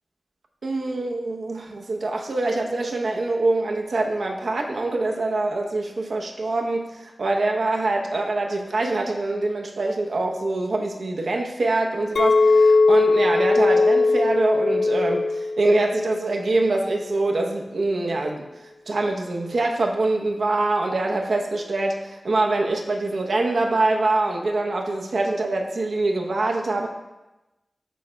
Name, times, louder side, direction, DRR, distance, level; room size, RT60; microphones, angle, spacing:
voice 1, 0.6-18.5 18.9-26.9, right 2 dB, 80° right, 2 dB, 0.7 m, -24 dB
Chink clink, 12.2-16.5 16.8-17.3, left 3 dB, 80° left, 0.5 m, -20 dB
11.5 x 4.9 x 2.2 m, 1.0 s
wide cardioid pair, 95°, 0 cm